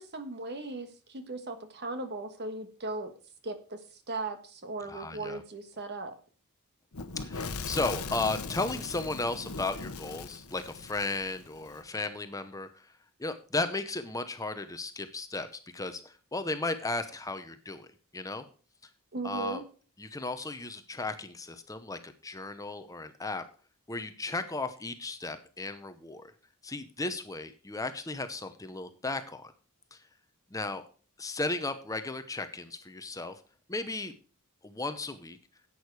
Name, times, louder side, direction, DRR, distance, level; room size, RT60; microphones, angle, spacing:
voice 1, 0.0-3.1 3.4-3.8 4.1-6.1 19.1-19.6, right 2 dB, 50° right, 8 dB, 1.5 m, -37 dB
voice 2, 4.9-5.4 7.2-12.9 13.2-15.5 15.7-17.9 18.1-18.4 19.2-19.6 20.0-23.4 23.9-26.3 26.6-29.5 29.9-30.0 30.5-30.8 31.2-33.3 33.7-34.1 34.6-35.4, left 2 dB, 15° left, 9 dB, 0.8 m, -35 dB
Fire / Explosion, 6.9-11.8, left 4 dB, 75° left, 1.0 m, -39 dB
11.0 x 8.6 x 4.7 m, 0.40 s
head